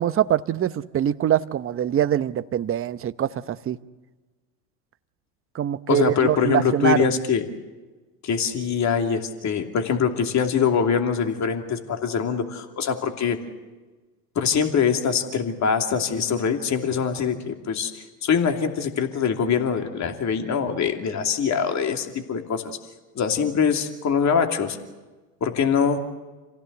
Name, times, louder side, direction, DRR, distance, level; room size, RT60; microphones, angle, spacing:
voice 1, 0.0-3.8 5.5-7.1, right 10 dB, 25° right, 14 dB, 0.9 m, -23 dB
voice 2, 5.9-7.4 8.2-13.4 14.3-22.8 23.1-24.8 25.4-26.0, left 6 dB, 35° left, 5 dB, 2.8 m, -23 dB
27.0 x 16.5 x 8.1 m, 1.2 s
hypercardioid pair, 90°, 49 cm